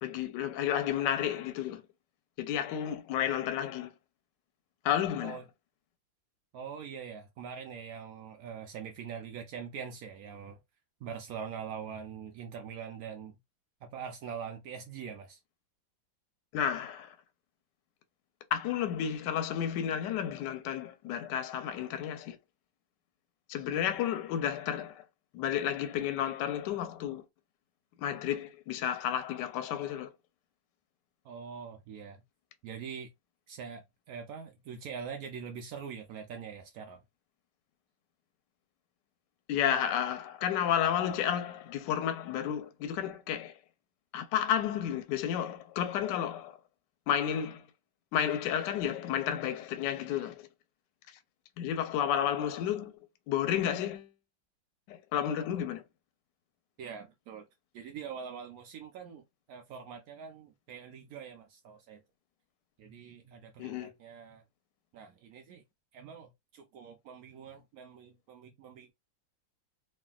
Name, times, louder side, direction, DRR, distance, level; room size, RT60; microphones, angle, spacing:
voice 1, 0.0-1.8 2.4-3.9 4.8-5.4 16.5-17.1 18.5-22.4 23.5-25.0 25.3-27.2 28.0-30.1 39.5-43.5 44.1-46.5 47.1-47.6 48.1-50.5 51.6-52.9 53.3-54.1 54.9-55.8 63.6-63.9, left 9 dB, 75° left, 1.1 m, -31 dB
voice 2, 6.5-10.6 11.0-13.4 13.8-15.4 31.2-32.2 32.6-33.1 33.5-37.0 56.8-57.4 57.7-59.2 59.5-62.0 62.8-64.4 64.9-65.6 65.9-68.9, right 7 dB, 80° right, 0.8 m, -43 dB
3.2 x 2.5 x 2.2 m
omnidirectional pair, 2.1 m